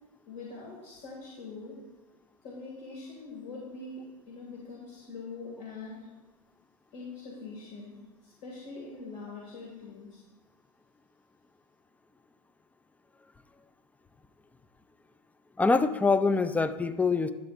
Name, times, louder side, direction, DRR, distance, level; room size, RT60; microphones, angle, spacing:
voice 1, 0.3-1.8 2.4-6.1 6.9-10.2, left 3 dB, 50° left, -4 dB, 2.2 m, -43 dB
voice 2, 15.6-17.3, left 4 dB, 5° left, 12 dB, 0.4 m, -24 dB
11.5 x 6.9 x 2.5 m, 1.2 s
hypercardioid pair, 100°, 20 cm